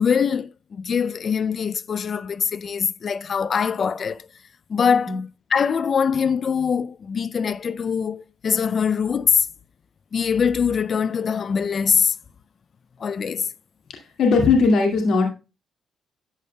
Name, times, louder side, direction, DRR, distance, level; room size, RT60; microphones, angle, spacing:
voice 1, 0.0-4.3 4.7-5.2 5.5-9.5 10.1-12.2 13.0-13.5, left 6 dB, 45° left, 0.4 m, -23 dB
voice 2, 13.9-15.3, left 4 dB, 70° left, 2.2 m, -19 dB
12.0 x 8.1 x 2.2 m
cardioid pair, 90°, 0 cm